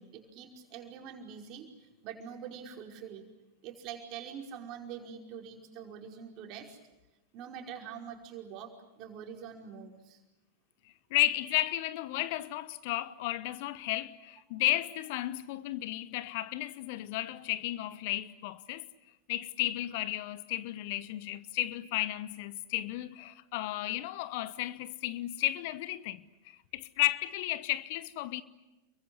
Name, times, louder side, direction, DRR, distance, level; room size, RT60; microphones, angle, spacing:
voice 1, 0.0-3.3 3.6-6.8 7.3-10.2, right 7 dB, 40° right, 5.2 m, -45 dB
voice 2, 11.1-18.8 19.3-26.2 26.7-28.4, left 16 dB, 50° left, 1.0 m, -33 dB
30.0 x 23.5 x 8.2 m
figure-of-eight pair, 90°, 0 cm